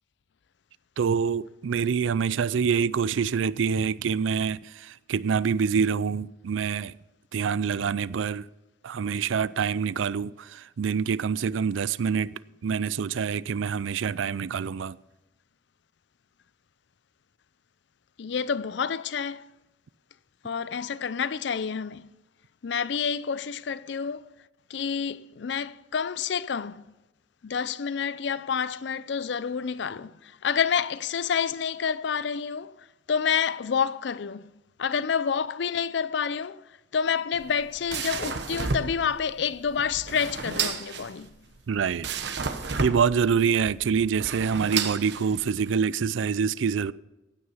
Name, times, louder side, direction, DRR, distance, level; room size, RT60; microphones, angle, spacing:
voice 1, 1.0-6.9 7.3-8.5 8.8-12.3 12.6-15.0 41.7-42.1 42.8-46.9, right 6 dB, 85° right, 0.4 m, -26 dB
voice 2, 18.2-19.5 20.4-22.1 22.6-24.3 24.7-26.9 27.4-34.5 34.8-41.3, left 6 dB, 65° left, 0.4 m, -29 dB
sound 1, 37.3-45.7, right 5 dB, 60° right, 1.1 m, -32 dB
15.5 x 9.6 x 5.6 m
head